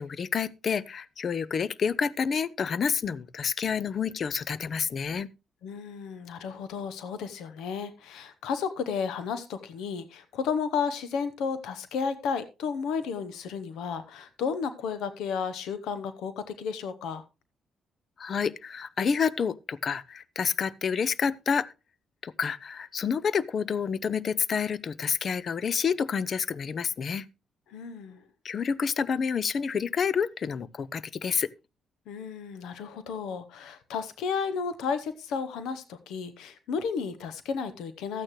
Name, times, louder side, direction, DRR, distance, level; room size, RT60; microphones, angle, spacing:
voice 1, 0.0-5.3 18.2-21.7 22.2-27.3 28.4-31.5, left 6 dB, 50° left, 0.6 m, -29 dB
voice 2, 5.6-17.2 27.7-28.2 32.1-38.2, left 6 dB, 85° left, 0.9 m, -33 dB
13.0 x 8.9 x 3.1 m
cardioid pair, 90°, 0 cm